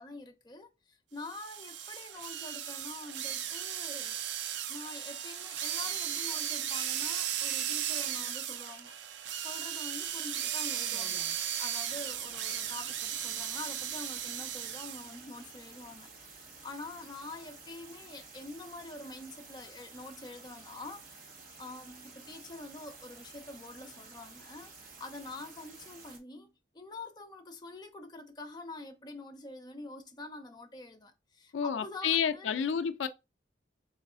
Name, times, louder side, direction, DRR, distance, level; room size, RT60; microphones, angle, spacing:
voice 1, 0.0-4.2 4.7-9.0 9.4-11.2 11.6-21.3 21.6-24.7 25.0-32.6, left 2 dB, 25° left, 0.6 m, -46 dB
sound 1, 1.3-15.2, right 10 dB, 70° right, 0.5 m, -36 dB
sound 2, 10.1-10.2 10.4-11.4 11.9-26.2, right 4 dB, 50° right, 1.2 m, -52 dB
voice 2, 31.5-33.1, left 7 dB, 90° left, 0.4 m, -30 dB
4.0 x 3.1 x 3.7 m
head